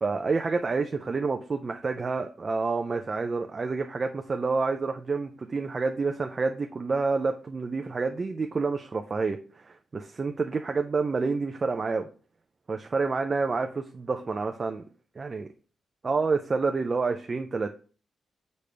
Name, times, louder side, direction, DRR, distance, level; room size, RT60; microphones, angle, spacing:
voice 1, 0.0-12.1 12.7-14.8 15.2-15.5 16.0-17.7, right 4 dB, 30° right, 5 dB, 0.4 m, -28 dB
6.7 x 5.2 x 3.3 m, 0.39 s
wide cardioid pair, 165°, 0 cm